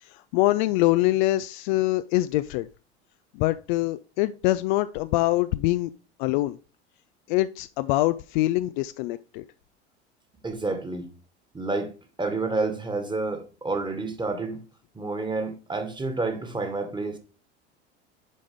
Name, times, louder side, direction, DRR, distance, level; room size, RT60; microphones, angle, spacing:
voice 1, 0.0-2.7 3.3-5.9 6.2-6.6 7.3-9.4, left 17 dB, 45° left, 0.4 m, -24 dB
voice 2, 10.4-11.1 11.5-11.9 12.2-14.6 14.9-17.2, right 3 dB, 15° right, 1.6 m, -29 dB
10.5 x 4.9 x 3.6 m
figure-of-eight pair, 75°, 35 cm